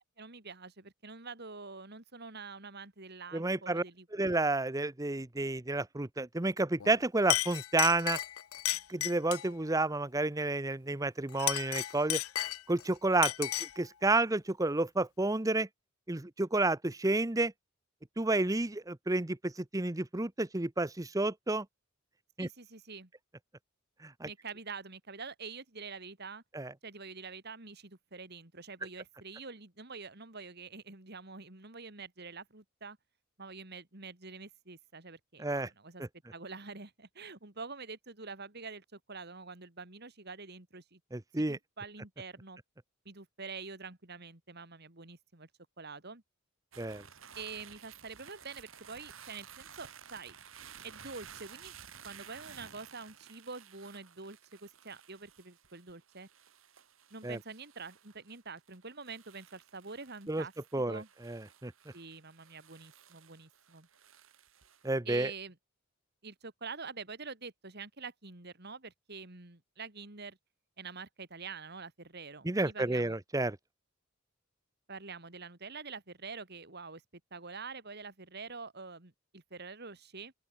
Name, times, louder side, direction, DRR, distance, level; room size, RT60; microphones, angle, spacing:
voice 1, 0.2-4.1 22.4-23.1 24.2-26.4 26.8-33.0 33.4-36.0 36.3-41.0 41.4-42.6 43.0-45.5 45.8-46.2 47.3-50.4 50.8-51.8 52.0-56.3 57.1-61.1 61.9-63.9 65.0-65.6 66.2-70.4 70.8-73.2 74.9-80.3, right 4 dB, 50° right, 2.8 m, -46 dB
voice 2, 3.3-3.8 4.1-8.2 8.9-12.2 12.7-13.5 13.8-15.7 16.1-17.5 18.2-21.6 22.4-22.5 24.2-24.3 26.5-26.7 35.4-35.7 41.1-41.6 46.8-47.0 57.2-57.4 60.3-60.4 60.7-61.0 61.3-61.7 64.8-65.3 72.4-73.6, right 2 dB, 15° right, 0.8 m, -30 dB
Chink clink, 6.8-7.0 7.3-9.5 11.3-12.8 13.2-13.8, left 14 dB, 90° left, 0.7 m, -33 dB
sound 1, 46.7-65.0, right 8 dB, 70° right, 3.5 m, -55 dB
open air
head